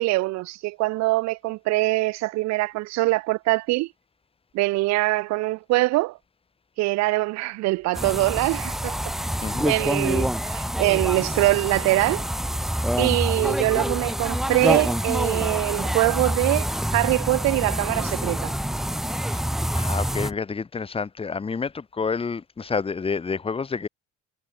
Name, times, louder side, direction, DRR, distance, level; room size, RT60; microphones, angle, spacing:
voice 1, 0.0-3.9 4.5-6.2 6.8-9.0 9.6-12.2 13.0-16.7 16.9-18.5, right 21 dB, 60° right, 0.5 m, -23 dB
sound 1, 7.9-20.3, equal, ahead, 0.6 m, -26 dB
voice 2, 9.4-9.8 19.7-23.9, left 5 dB, 20° left, 1.9 m, -29 dB
cardioid pair, 155°, 31 cm